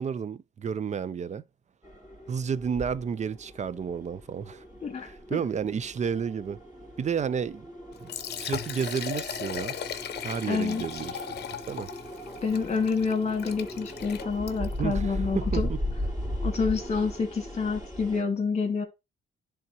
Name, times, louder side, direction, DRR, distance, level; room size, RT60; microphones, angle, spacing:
voice 1, 0.0-1.4 2.3-4.6 5.3-6.6 7.0-7.6 8.0-9.7 10.2-11.2 11.7-11.9 14.8-15.6, right 7 dB, 35° right, 0.5 m, -31 dB
sound 1, 1.8-18.2, equal, 20° right, 2.9 m, -37 dB
voice 2, 4.8-5.4 10.5-10.8 12.4-15.7 16.4-18.8, left 5 dB, 35° left, 2.1 m, -28 dB
Liquid, 7.9-14.8, left 9 dB, 55° left, 0.8 m, -38 dB
10.5 x 3.6 x 2.8 m
cardioid pair, 90°, 20 cm